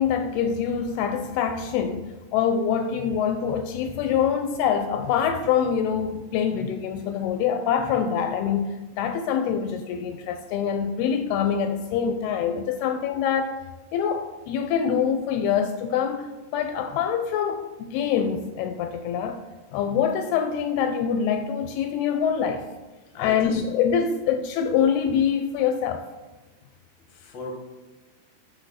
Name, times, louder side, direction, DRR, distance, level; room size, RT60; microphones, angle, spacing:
voice 1, 0.0-13.6 13.9-16.3 16.5-19.4 19.7-22.7 23.2-26.0, left 7 dB, 85° left, 7 dB, 2.3 m, -25 dB
voice 2, 23.1-23.6 27.1-27.5, left 4 dB, 65° left, 1 dB, 1.2 m, -36 dB
8.0 x 6.3 x 4.2 m, 1.2 s
omnidirectional pair, 4.8 m